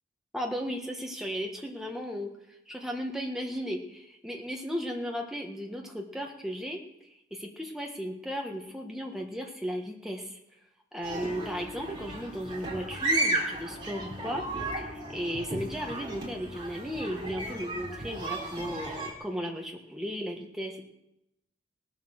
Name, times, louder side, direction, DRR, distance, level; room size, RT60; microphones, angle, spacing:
voice 1, 0.3-2.3 2.7-6.8 7.3-10.4 10.9-14.4 14.8-20.8, equal, ahead, 1 dB, 1.5 m, -35 dB
sound 1, 11.0-19.1, right 2 dB, 25° right, 3.2 m, -34 dB
Wind instrument woodwind instrument, 11.1-15.4, left 5 dB, 15° left, 1.0 m, -48 dB
18.5 x 7.5 x 6.5 m, 0.85 s
head